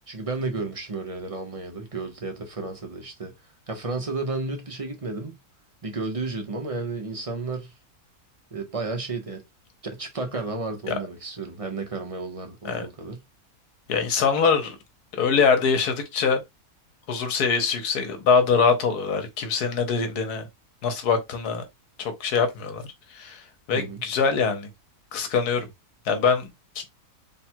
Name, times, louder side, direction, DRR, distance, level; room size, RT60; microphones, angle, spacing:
voice 1, 0.1-3.3 3.7-5.4 5.8-7.7 8.5-9.4 9.8-13.2 23.7-24.0, right 3 dB, 30° right, 0.8 m, -32 dB
voice 2, 13.9-14.8 15.1-16.4 17.1-20.5 20.8-21.6 22.0-24.7 25.1-25.7 26.0-26.9, left 5 dB, 80° left, 1.4 m, -23 dB
3.5 x 2.3 x 4.4 m
omnidirectional pair, 1.6 m